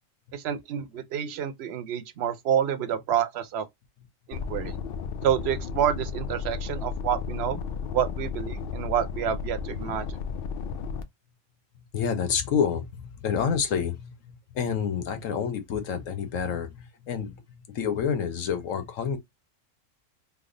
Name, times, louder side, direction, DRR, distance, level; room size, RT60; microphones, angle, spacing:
voice 1, 0.3-3.7 4.3-4.7 5.2-7.6 7.9-10.1, right 9 dB, 60° right, 0.8 m, -28 dB
sound 1, 4.3-11.0, left 6 dB, 60° left, 0.6 m, -34 dB
voice 2, 11.7-19.2, left 7 dB, 80° left, 1.1 m, -29 dB
3.4 x 2.0 x 3.7 m
omnidirectional pair, 1.4 m